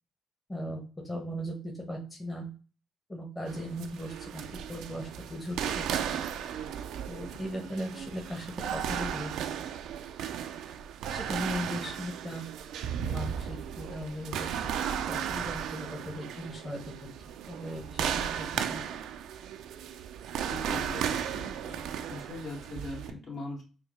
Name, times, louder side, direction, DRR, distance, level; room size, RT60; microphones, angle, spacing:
voice 1, 0.5-2.5 3.1-4.4 4.7-6.1 7.1-9.3 11.1-12.4 13.0-14.4 15.1-16.8 17.5-18.8, equal, 20° left, 0 dB, 1.1 m, -38 dB
sound 1, 3.5-23.1, right 9 dB, 75° right, 0.3 m, -35 dB
voice 2, 20.5-23.6, left 2 dB, 55° left, -3 dB, 1.7 m, -41 dB
4.7 x 2.1 x 3.1 m, 0.36 s
supercardioid pair, 55°, 0 cm